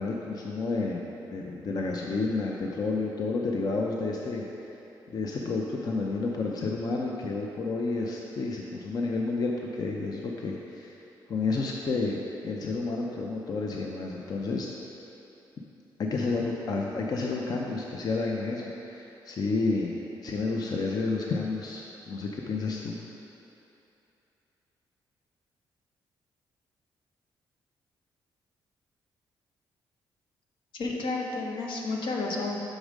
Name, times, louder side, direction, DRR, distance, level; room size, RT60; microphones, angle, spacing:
voice 1, 0.0-4.5 5.1-11.0 11.3-12.2 12.4-14.7 16.0-23.0, left 3 dB, 50° left, -1 dB, 0.6 m, -30 dB
voice 2, 30.7-32.6, left 3 dB, 80° left, -1 dB, 0.9 m, -31 dB
6.3 x 4.9 x 5.0 m, 2.9 s
cardioid pair, 90°, 8 cm